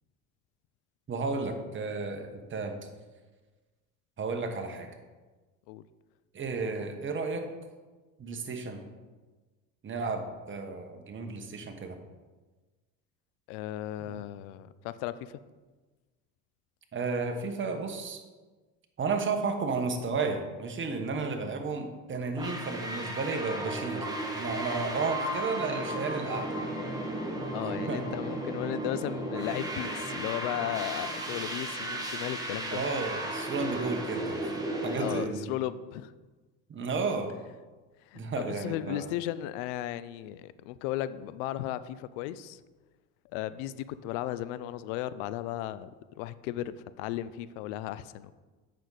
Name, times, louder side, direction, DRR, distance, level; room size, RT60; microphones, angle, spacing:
voice 1, 1.1-2.8 4.2-4.9 6.3-7.5 8.2-8.8 9.8-12.0 14.1-14.2 16.9-18.2 19.0-24.1 24.3-26.6 27.6-28.0 32.7-34.5 34.8-35.4 36.7-37.3 38.1-39.1, right 4 dB, 35° right, 4 dB, 1.3 m, -33 dB
voice 2, 13.5-15.4 27.5-32.8 35.0-36.1 38.1-42.6 43.3-45.9 46.2-48.3, left 13 dB, 80° left, 15 dB, 0.5 m, -35 dB
sound 1, 22.4-35.2, right 1 dB, 10° right, 1.5 m, -34 dB
8.3 x 6.3 x 4.1 m, 1.3 s
supercardioid pair, 90°, 36 cm